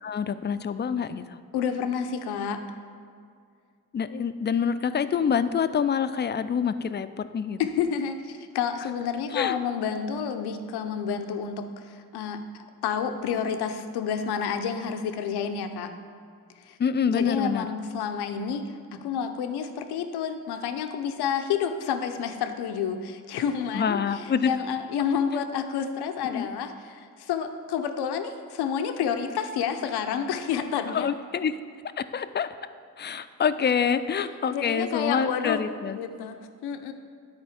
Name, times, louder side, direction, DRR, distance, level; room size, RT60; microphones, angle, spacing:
voice 1, 0.0-1.4 3.9-7.6 9.3-9.6 16.8-17.7 23.7-24.5 26.2-26.5 30.9-31.5 32.0-32.5 33.0-36.0, left 7 dB, 30° left, 12 dB, 0.4 m, -26 dB
voice 2, 1.5-2.6 7.6-15.9 16.6-16.8 17.0-31.1 34.5-36.9, left 7 dB, 85° left, 7 dB, 0.6 m, -29 dB
10.5 x 4.2 x 4.9 m, 2.3 s
supercardioid pair, 55°, 38 cm